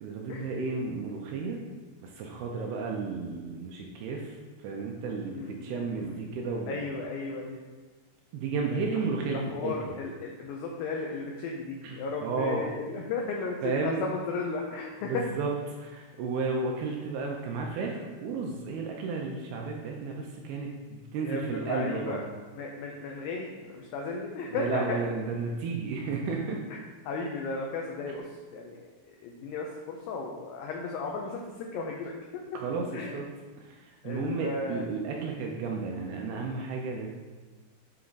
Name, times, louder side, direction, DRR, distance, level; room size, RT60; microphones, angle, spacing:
voice 1, 0.0-1.6 2.0-4.3 4.6-6.8 8.3-9.9 11.8-12.7 13.6-14.0 15.1-15.5 15.8-22.2 24.6-26.6 32.5-33.3 33.7-37.1, right 4 dB, 80° right, 0 dB, 2.4 m, -33 dB
voice 2, 5.3-5.7 6.0-6.2 6.7-7.6 9.3-15.2 21.2-22.2 22.6-25.0 27.1-28.9 29.2-32.4 32.9-33.2 34.0-34.8, left 3 dB, 85° left, 0 dB, 2.0 m, -35 dB
8.7 x 3.4 x 3.9 m, 1.3 s
omnidirectional pair, 4.9 m